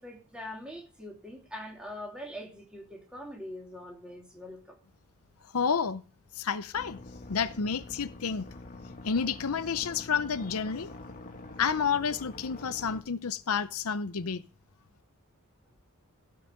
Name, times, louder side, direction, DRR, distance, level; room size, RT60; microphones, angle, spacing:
voice 1, 0.0-4.8, left 1 dB, 5° right, 3.1 m, -43 dB
voice 2, 5.5-6.0 6.4-7.0 7.3-8.5 9.0-10.9 11.6-14.4, left 6 dB, 80° left, 0.7 m, -30 dB
sound 1, 6.7-13.0, left 2 dB, 40° left, 2.1 m, -45 dB
17.0 x 5.7 x 6.5 m
head